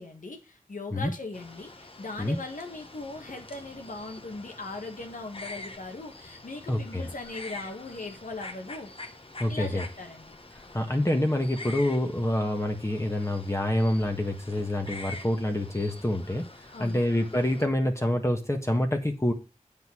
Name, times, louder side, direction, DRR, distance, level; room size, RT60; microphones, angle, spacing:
voice 1, 0.0-8.9 9.5-10.3 16.7-17.1, left 2 dB, 85° left, 3 dB, 1.6 m, -39 dB
sound 1, 1.3-17.7, left 2 dB, 45° left, 1.4 m, -45 dB
voice 2, 6.7-7.1 9.4-9.9 10.7-16.5 16.8-19.3, left 1 dB, 20° left, 3 dB, 1.5 m, -27 dB
8.2 x 5.2 x 6.1 m, 0.29 s
wide cardioid pair, 55°, 13 cm